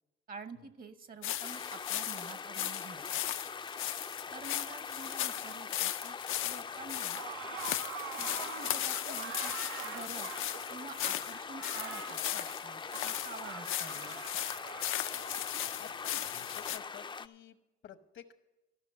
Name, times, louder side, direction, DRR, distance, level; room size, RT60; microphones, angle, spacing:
voice 1, 0.3-3.2 4.3-6.2 6.4-7.2 8.1-9.5 9.8-10.4 10.7-14.2, right 4 dB, 45° right, 11 dB, 1.1 m, -48 dB
sound 1, 1.2-16.8, left 13 dB, 85° left, 0.5 m, -37 dB
sound 2, 1.4-17.3, left 5 dB, 25° left, 0.4 m, -43 dB
sound 3, 7.1-15.7, right 9 dB, 80° right, 0.6 m, -45 dB
voice 2, 15.8-17.6 17.8-18.3, left 9 dB, 70° left, 10 dB, 1.0 m, -51 dB
14.0 x 6.0 x 7.7 m, 1.0 s
cardioid pair, 100°, 20 cm